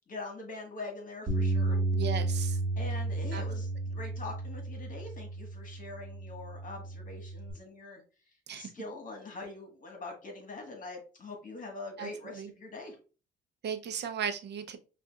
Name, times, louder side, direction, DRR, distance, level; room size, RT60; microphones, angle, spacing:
voice 1, 0.1-1.8 2.8-8.0 8.5-13.0, left 3 dB, 45° left, 2 dB, 1.5 m, -43 dB
Bass guitar, 1.3-7.5, right 2 dB, 40° right, 1.2 m, -33 dB
voice 2, 1.9-2.6 3.3-3.4 8.5-8.7 12.0-12.1 12.4-12.5 13.6-14.8, right 7 dB, 60° right, 8 dB, 0.7 m, -35 dB
5.5 x 2.5 x 2.4 m, 0.34 s
cardioid pair, 90°, 20 cm